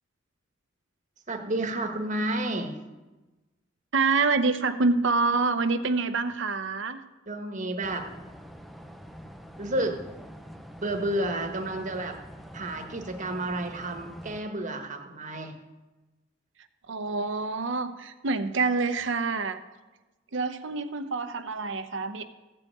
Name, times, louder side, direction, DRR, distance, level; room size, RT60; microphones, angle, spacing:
voice 1, 1.3-2.8 7.3-8.1 9.6-10.0 10.8-12.2 12.5-15.6, right 1 dB, 40° right, 4 dB, 1.4 m, -31 dB
voice 2, 3.9-7.0 16.9-19.6 20.3-22.2, right 4 dB, 65° right, 9 dB, 0.9 m, -26 dB
sound 1, 7.8-14.4, equal, ahead, 0.6 m, -45 dB
15.5 x 5.4 x 8.5 m, 1.1 s
head